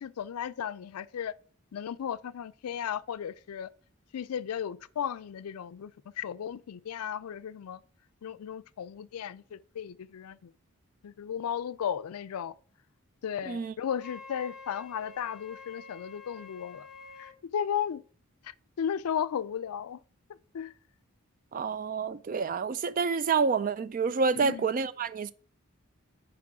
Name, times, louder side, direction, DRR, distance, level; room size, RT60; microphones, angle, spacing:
voice 1, 0.0-1.3 1.7-3.7 4.1-5.9 6.2-7.8 8.2-10.5 11.0-12.5 13.2-16.8 17.2-18.0 18.8-20.0 20.5-20.7 24.4-24.7, left 8 dB, 85° left, 0.4 m, -35 dB
Wind instrument woodwind instrument, 14.0-17.4, left 4 dB, 5° right, 0.9 m, -48 dB
voice 2, 21.5-25.3, right 5 dB, 40° right, 0.3 m, -28 dB
6.0 x 4.8 x 5.9 m
head